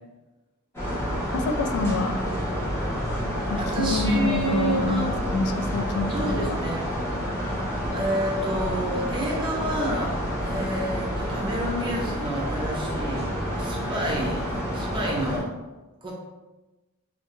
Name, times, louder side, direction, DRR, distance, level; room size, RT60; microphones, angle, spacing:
sound 1, 0.7-15.4, equal, 10° left, 0.7 m, -29 dB
voice 1, 1.3-2.2 3.5-6.6, left 3 dB, 80° left, 7 dB, 0.3 m, -27 dB
voice 2, 3.6-5.1 6.1-6.9 7.9-10.1 10.4-15.5 16.0-16.1, right 1 dB, 20° right, -2 dB, 0.5 m, -29 dB
2.4 x 2.2 x 2.9 m, 1.1 s
head